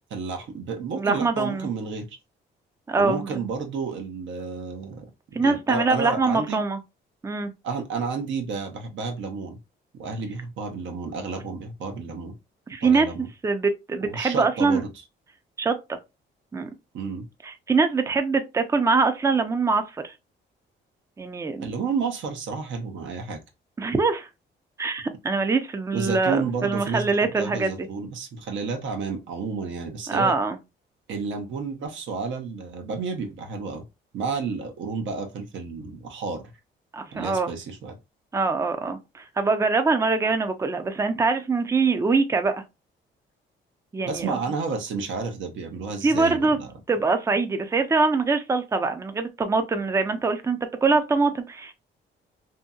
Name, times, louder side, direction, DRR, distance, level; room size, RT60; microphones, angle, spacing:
voice 1, 0.1-2.2 3.0-5.1 5.4-6.6 7.6-9.6 10.0-12.4 12.8-13.3 14.0-14.9 16.9-17.3 21.6-23.4 25.9-30.3 31.1-33.9 34.1-36.4 37.1-38.0 44.1-46.7, right 4 dB, 70° right, 0.8 m, -31 dB
voice 2, 1.0-1.7 2.9-3.2 5.3-6.8 7.2-7.5 12.7-13.1 13.4-14.8 15.6-16.0 16.5-16.7 17.4-20.1 21.2-21.7 23.8-24.3 24.8-27.9 30.1-30.6 36.9-37.5 38.3-42.6 43.9-44.4 46.0-46.6 46.9-51.7, right 4 dB, 15° right, 0.4 m, -23 dB
2.7 x 2.7 x 2.2 m
cardioid pair, 90°, 20 cm